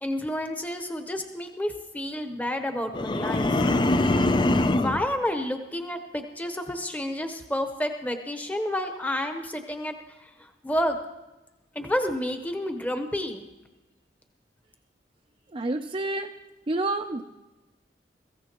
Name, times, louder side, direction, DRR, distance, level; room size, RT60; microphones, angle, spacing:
voice 1, 0.0-3.5 4.7-10.0 10.2-11.0 11.7-13.4, left 1 dB, 10° left, 6 dB, 0.9 m, -30 dB
sound 1, 2.9-5.1, left 2 dB, 25° left, 0.4 m, -23 dB
voice 2, 15.5-16.3 16.7-17.2, right 2 dB, 30° right, 4 dB, 0.5 m, -28 dB
23.0 x 15.0 x 3.0 m, 1.1 s
head